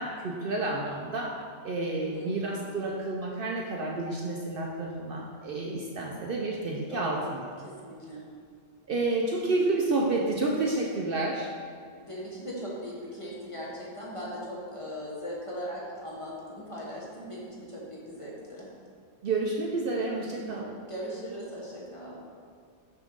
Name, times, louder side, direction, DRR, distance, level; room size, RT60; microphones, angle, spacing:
voice 1, 0.0-1.4 1.6-7.5 8.9-11.5 19.2-20.7, right 2 dB, 60° right, -1 dB, 0.7 m, -30 dB
voice 2, 2.1-2.6 6.9-7.3 7.6-8.2 11.9-18.7 20.9-22.1, equal, 30° left, -6 dB, 1.1 m, -39 dB
6.2 x 3.4 x 5.2 m, 2.1 s
omnidirectional pair, 1.2 m